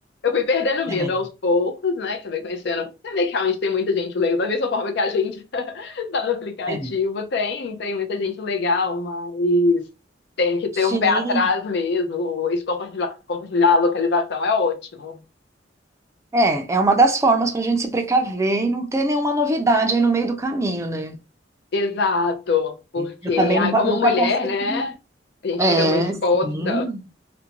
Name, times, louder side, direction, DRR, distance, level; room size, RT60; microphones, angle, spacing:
voice 1, 0.2-9.9 10.4-15.2 21.7-24.9 25.4-26.9, left 4 dB, 65° left, 0.5 m, -23 dB
voice 2, 10.9-11.4 16.3-21.2 23.0-24.8 25.6-27.0, right 2 dB, 15° right, 0.4 m, -21 dB
2.5 x 2.1 x 2.8 m
head